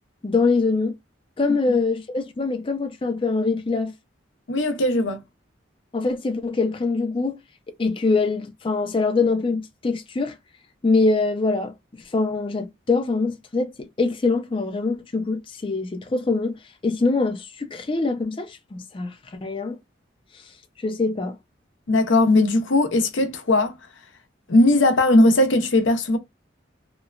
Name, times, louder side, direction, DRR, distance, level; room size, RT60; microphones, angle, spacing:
voice 1, 0.2-1.0 1.4-3.9 5.9-7.4 7.8-10.4 10.8-11.7 12.0-19.8 20.3-20.5 20.8-21.4, left 3 dB, 30° left, 0.4 m, -24 dB
voice 2, 4.5-5.2 21.9-23.8 24.5-26.2, left 2 dB, 85° left, 0.6 m, -18 dB
2.9 x 2.1 x 2.3 m
head